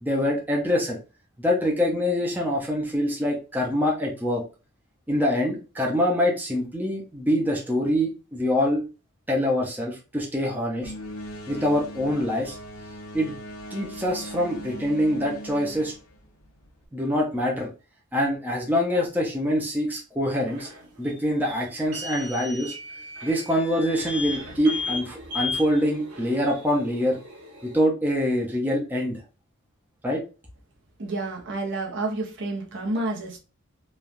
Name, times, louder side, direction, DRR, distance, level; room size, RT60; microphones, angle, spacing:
voice 1, 0.0-1.0 1.4-4.4 5.1-8.8 9.3-10.9 11.5-12.6 13.1-13.3 13.7-15.9 16.9-17.7 18.1-20.7 21.0-22.7 23.2-27.2 27.6-29.2 30.0-30.2, equal, 10° right, 0.5 m, -25 dB
sound 1, 10.8-16.9, equal, 75° left, 0.7 m, -39 dB
sound 2, 20.5-27.7, left 3 dB, 90° right, 0.9 m, -36 dB
voice 2, 31.0-33.4, right 2 dB, 55° right, 0.8 m, -29 dB
3.1 x 2.2 x 2.5 m
head